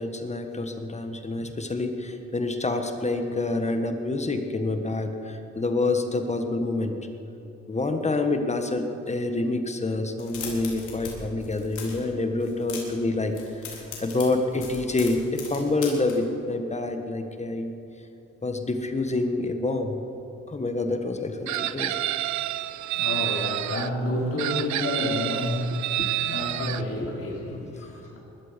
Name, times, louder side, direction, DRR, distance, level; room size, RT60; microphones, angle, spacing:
voice 1, 0.0-6.9 7.7-13.3 13.6-17.8 18.4-19.9 20.5-22.0 26.0-26.1 27.0-27.4, left 2 dB, 20° left, 6 dB, 1.5 m, -27 dB
sound 1, 10.1-11.1 11.4-12.0 12.4-13.0 13.3-16.1, left 6 dB, 75° left, 3.8 m, -38 dB
Chicken rooster, 21.5-23.9 24.4-26.8, right 14 dB, 70° right, 0.5 m, -29 dB
voice 2, 22.3-28.2, left 1 dB, 50° left, -3 dB, 4.5 m, -30 dB
20.0 x 13.0 x 5.3 m, 2.9 s
cardioid pair, 90°, 30 cm